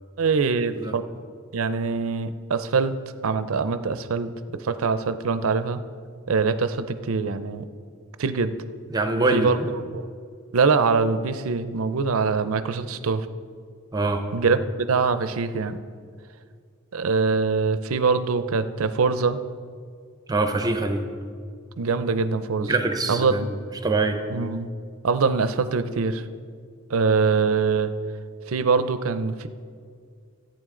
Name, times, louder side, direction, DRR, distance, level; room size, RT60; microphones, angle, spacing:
voice 1, 0.2-1.0 1.5-2.9 3.2-5.8 6.3-7.7 8.2-8.5 9.3-9.6 9.9-10.0 10.5-13.3 14.3-15.8 16.9-19.4 21.8-22.7 23.1-23.3 24.3-24.7 25.0-26.2 26.9-27.9 28.5-29.5, right 4 dB, 70° right, 12 dB, 0.5 m, -23 dB
voice 2, 8.9-9.7 13.9-14.2 20.3-21.0 22.6-24.2, right 3 dB, 20° right, 6 dB, 0.7 m, -24 dB
14.0 x 8.9 x 3.8 m, 2.1 s
head